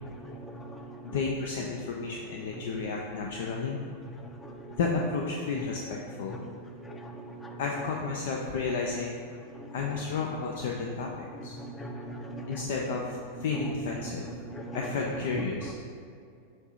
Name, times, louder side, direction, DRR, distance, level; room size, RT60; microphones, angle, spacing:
voice 1, 1.0-3.8 4.8-6.4 7.6-9.2 9.7-11.6 12.5-14.3 14.7-15.7, left 4 dB, 55° left, 0 dB, 0.5 m, -32 dB
voice 2, 11.8-12.4 14.5-14.8, right 1 dB, 15° left, 3 dB, 0.6 m, -39 dB
7.7 x 2.8 x 5.6 m, 2.4 s
figure-of-eight pair, 90°, 0 cm